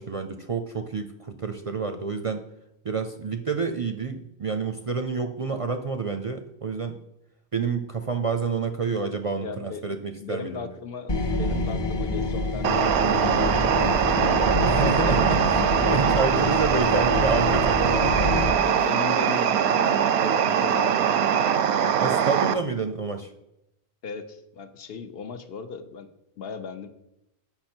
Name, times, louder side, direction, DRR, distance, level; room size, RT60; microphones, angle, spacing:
voice 1, 0.0-2.4 2.8-7.0 7.5-10.7 14.7-18.3 22.0-23.3, right 5 dB, 45° right, 6 dB, 0.4 m, -29 dB
voice 2, 9.4-14.8 15.1-16.6 18.1-18.3 18.6-21.1 24.0-26.1 26.4-26.9, left 5 dB, 70° left, 9 dB, 0.9 m, -38 dB
sound 1, 11.1-18.5, left 2 dB, 30° left, 0.6 m, -27 dB
sound 2, 12.6-22.5, right 8 dB, 85° right, 0.8 m, -22 dB
7.9 x 5.6 x 4.4 m, 0.84 s
omnidirectional pair, 1.1 m